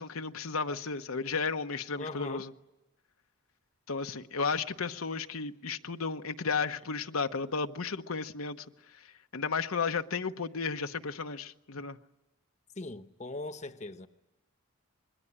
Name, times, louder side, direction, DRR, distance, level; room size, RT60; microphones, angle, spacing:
voice 1, 0.0-2.5 3.9-8.6 8.9-9.1 9.3-12.0, left 5 dB, 90° left, 1.0 m, -33 dB
voice 2, 2.0-2.5 12.8-14.1, left 2 dB, 35° left, 0.9 m, -40 dB
26.0 x 22.0 x 9.9 m
head